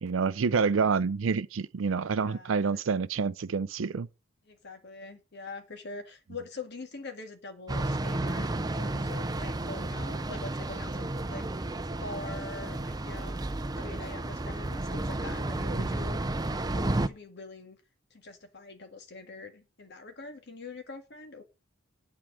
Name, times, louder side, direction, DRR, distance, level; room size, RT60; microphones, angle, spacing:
voice 1, 0.0-4.1 15.7-15.9, right 5 dB, 80° right, 0.5 m, -28 dB
voice 2, 2.2-2.8 4.5-11.5 11.9-13.4 13.8-16.2 16.5-17.8 18.1-21.4, left 3 dB, 60° left, 1.8 m, -44 dB
sound 1, 7.7-17.1, right 2 dB, 20° right, 0.5 m, -32 dB
8.9 x 4.7 x 7.5 m
head